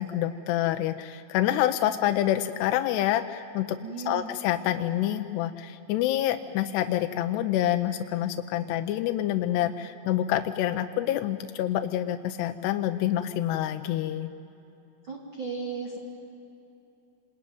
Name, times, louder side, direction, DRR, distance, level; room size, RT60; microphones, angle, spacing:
voice 1, 0.0-3.8 4.0-14.3, left 12 dB, 80° left, 7 dB, 2.8 m, -27 dB
voice 2, 3.8-4.3 15.1-16.0, right 5 dB, 35° right, -4 dB, 2.5 m, -35 dB
28.5 x 21.0 x 9.3 m, 2.9 s
omnidirectional pair, 4.9 m